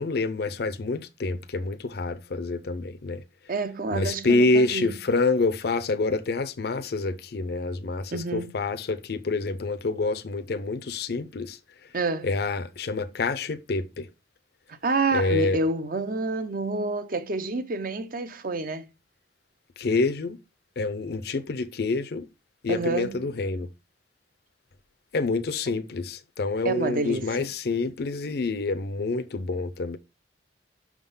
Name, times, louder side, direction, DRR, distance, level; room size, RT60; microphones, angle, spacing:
voice 1, 0.0-3.2 3.9-11.6 12.2-14.1 15.1-15.6 19.8-20.4 20.8-22.3 22.6-23.7 25.1-30.0, left 3 dB, 65° left, 0.5 m, -27 dB
voice 2, 3.5-4.9 8.1-8.5 11.9-12.3 14.7-18.9 22.7-23.2 26.6-27.5, right 3 dB, 55° right, 0.8 m, -28 dB
6.2 x 3.7 x 5.5 m
head